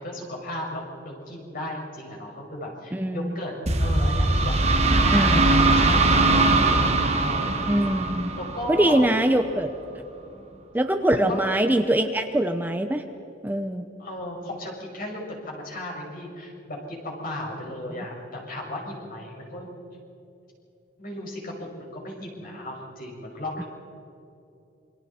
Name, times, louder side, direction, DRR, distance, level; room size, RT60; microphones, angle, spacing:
voice 1, 0.0-6.8 7.2-7.6 8.4-9.1 10.3-10.6 11.1-11.6 14.0-19.8 21.0-23.7, left 1 dB, 50° left, -1 dB, 5.8 m, -35 dB
voice 2, 2.9-3.4 5.1-5.5 7.6-8.3 8.7-9.7 10.7-13.0 13.4-13.8, right 1 dB, 10° right, 6 dB, 0.7 m, -23 dB
sound 1, 3.7-9.3, right 2 dB, 35° right, 1.6 m, -21 dB
28.0 x 24.0 x 4.4 m, 2.8 s
head